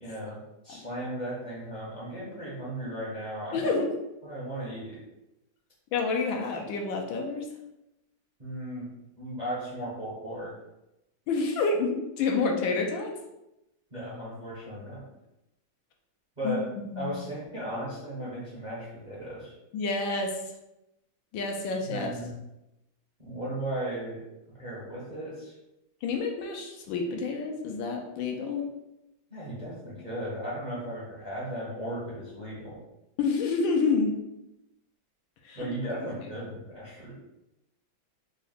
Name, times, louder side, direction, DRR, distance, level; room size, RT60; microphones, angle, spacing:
voice 1, 0.0-3.8 4.2-5.0 8.4-8.9 9.2-10.5 13.9-15.0 16.4-16.6 16.9-19.5 21.9-22.3 23.2-24.2 24.6-25.6 29.3-32.8 35.5-37.1, right 1 dB, 35° right, -7 dB, 0.7 m, -36 dB
voice 2, 3.5-3.9 5.9-7.5 11.3-13.1 16.4-17.1 19.7-20.4 21.3-22.1 26.0-28.6 33.2-34.2 35.4-35.7, left 4 dB, 75° left, 1 dB, 1.3 m, -28 dB
3.8 x 2.1 x 3.9 m, 0.92 s
omnidirectional pair, 2.2 m